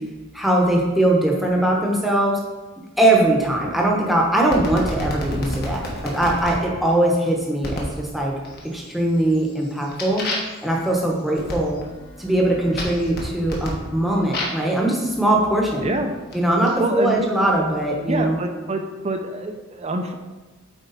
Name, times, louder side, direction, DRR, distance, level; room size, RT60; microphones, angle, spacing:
voice 1, 0.3-2.4 3.0-8.3 8.6-10.3 10.6-11.8 12.2-16.0 16.3-18.4, right 1 dB, ahead, -2 dB, 1.0 m, -21 dB
sound 1, 4.5-6.6 7.6-8.0 8.4-8.9 9.3-14.7 15.5-16.7, left 1 dB, 45° left, 1.3 m, -31 dB
voice 2, 15.8-16.1 16.8-17.1 18.1-20.1, right 2 dB, 30° right, 5 dB, 0.5 m, -26 dB
8.2 x 4.5 x 4.1 m, 1.2 s
head